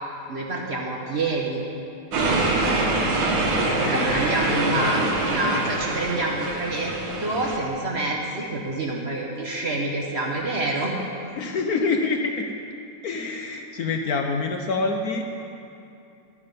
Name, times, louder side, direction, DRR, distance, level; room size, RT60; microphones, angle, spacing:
voice 1, 0.3-1.6 3.9-6.9 7.2-11.0, right 2 dB, 45° right, -1 dB, 1.1 m, -27 dB
sound 1, 2.1-7.6, right 2 dB, 80° right, 2.0 m, -24 dB
voice 2, 3.6-5.1 11.4-12.6 13.0-15.3, left 4 dB, 65° left, 4 dB, 1.0 m, -27 dB
11.5 x 9.6 x 5.3 m, 2.7 s
omnidirectional pair, 2.0 m